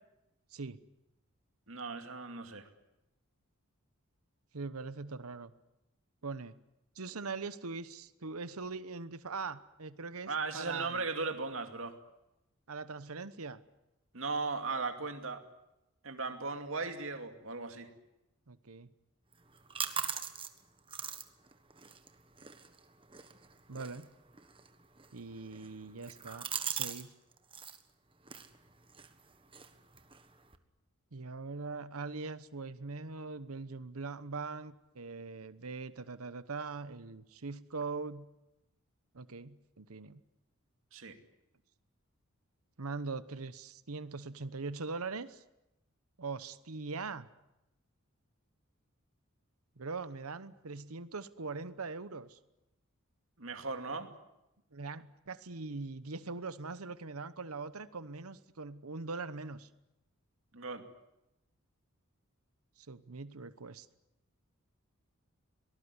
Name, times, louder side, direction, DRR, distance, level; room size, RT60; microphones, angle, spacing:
voice 1, 1.7-2.7 10.3-11.9 14.1-15.4 16.0-17.9 40.9-41.2 53.4-54.1 60.5-60.8, right 4 dB, 65° right, 6 dB, 2.6 m, -37 dB
voice 2, 4.5-5.5 6.2-6.5 6.9-11.1 12.7-13.6 18.5-18.9 23.7-24.1 25.1-27.1 31.1-38.3 39.1-40.2 42.8-45.4 46.2-47.3 49.8-52.4 54.7-59.7 62.8-63.9, right 4 dB, 85° right, 14 dB, 1.0 m, -42 dB
sound 1, 19.3-27.1 27.3-27.8 28.2-30.6, right 7 dB, 25° right, 1.4 m, -43 dB
24.5 x 19.0 x 9.8 m, 0.91 s
head